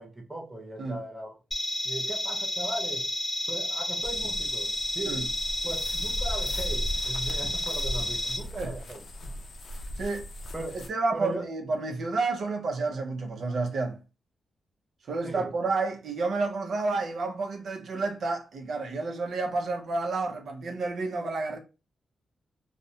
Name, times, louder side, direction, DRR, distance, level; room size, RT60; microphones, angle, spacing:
voice 1, 0.0-1.4 1.8-3.1 3.5-5.3 5.6-9.3 10.5-10.8 11.1-11.5 15.2-15.5, right 2 dB, 15° right, 0.6 m, -38 dB
sound 1, 1.5-8.4, left 1 dB, 15° left, 0.9 m, -31 dB
sound 2, 4.0-10.9, equal, 60° left, 0.5 m, -37 dB
voice 2, 10.0-10.3 10.7-14.0 15.1-21.6, right 3 dB, 70° right, 0.6 m, -30 dB
2.4 x 2.1 x 2.7 m
cardioid pair, 85°, 0 cm